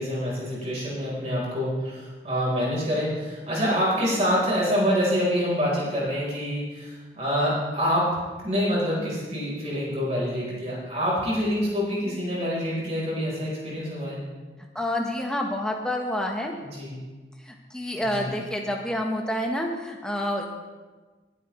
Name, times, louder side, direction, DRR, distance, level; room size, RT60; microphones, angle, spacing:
voice 1, 0.0-8.1 8.4-14.2 16.6-16.9 18.0-18.4, equal, 35° right, -5 dB, 3.9 m, -26 dB
voice 2, 14.7-16.5 17.5-20.5, left 1 dB, 5° left, 1 dB, 1.1 m, -28 dB
19.0 x 8.6 x 3.1 m, 1.3 s
head